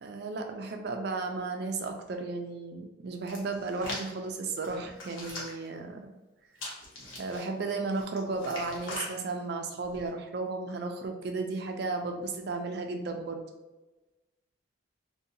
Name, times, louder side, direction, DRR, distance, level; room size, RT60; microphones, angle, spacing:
voice 1, 0.0-6.1 7.2-13.4, right 3 dB, 55° right, 4 dB, 0.3 m, -34 dB
Hands, 3.3-4.1 4.6-5.7 6.6-7.4 7.9-9.1 9.8-10.1, left 1 dB, 85° left, 0.9 m, -41 dB
2.7 x 2.2 x 2.6 m, 1.1 s
head